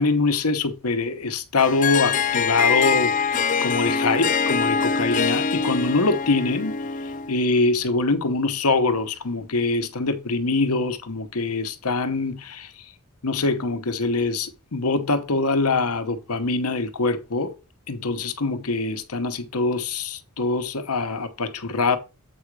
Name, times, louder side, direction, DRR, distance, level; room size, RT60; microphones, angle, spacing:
voice 1, 0.0-6.8 7.3-12.7 13.2-17.5 17.9-22.0, left 3 dB, 90° left, 1.0 m, -24 dB
Harp, 1.6-7.4, left 5 dB, 35° left, 0.4 m, -23 dB
7.9 x 5.0 x 4.7 m
head